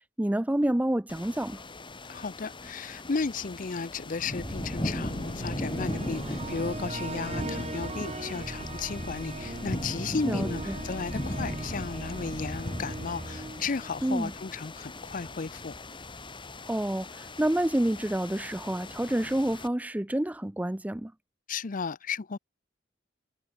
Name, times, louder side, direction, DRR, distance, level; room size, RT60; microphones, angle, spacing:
voice 1, 0.2-1.6 10.2-10.8 14.0-14.3 16.7-21.1, right 1 dB, 10° right, 0.5 m, -28 dB
sound 1, 1.1-19.7, left 1 dB, 25° left, 2.3 m, -38 dB
voice 2, 2.1-15.7 21.5-22.4, left 4 dB, 45° left, 0.6 m, -34 dB
sound 2, 4.4-14.6, right 1 dB, 35° right, 3.3 m, -39 dB
head